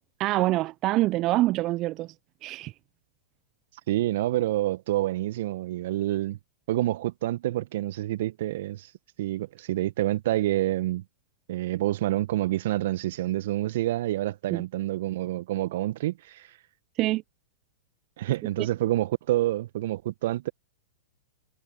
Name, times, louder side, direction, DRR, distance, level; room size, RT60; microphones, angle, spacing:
voice 1, 0.2-2.1 2.4-2.7 14.5-14.6 17.0-17.2, right 17 dB, 40° right, 0.9 m, -25 dB
voice 2, 3.9-6.4 6.7-8.9 9.2-11.0 11.5-16.5 18.2-20.5, right 15 dB, 60° right, 1.8 m, -27 dB
figure-of-eight pair, 105°, 0 cm